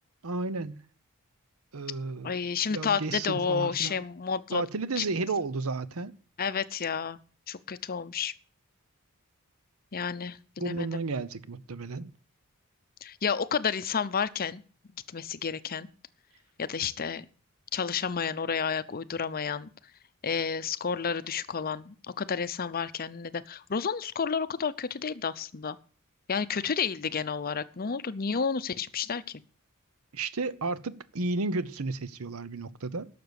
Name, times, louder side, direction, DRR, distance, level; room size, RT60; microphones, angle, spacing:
voice 1, 0.2-0.8 1.7-2.4 2.7-4.0 4.5-6.1 10.6-12.1 30.1-33.1, right 3 dB, 75° right, 0.8 m, -32 dB
voice 2, 2.2-4.6 5.0-5.1 6.4-7.2 7.5-8.3 9.9-11.1 13.0-14.6 15.1-15.9 16.6-17.3 17.7-19.7 20.2-25.8 26.3-29.4, left 6 dB, 45° left, 0.6 m, -31 dB
12.0 x 6.8 x 8.0 m
head